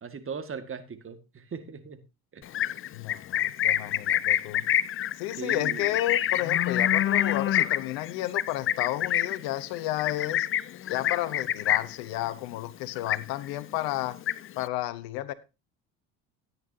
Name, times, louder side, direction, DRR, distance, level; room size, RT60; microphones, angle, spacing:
voice 1, 0.0-2.0 2.3-2.5 5.3-5.9, right 6 dB, 35° right, 9 dB, 1.9 m, -38 dB
Livestock farm animals working animals, 2.4-12.0 12.4-12.7 12.9-13.6 14.0-14.7, left 11 dB, 35° left, 0.5 m, -27 dB
voice 2, 2.9-4.6 5.2-10.5 10.9-14.2 14.6-15.3, left 15 dB, 75° left, 16 dB, 1.0 m, -32 dB
13.5 x 9.8 x 2.8 m, 0.27 s
hypercardioid pair, 70°, 37 cm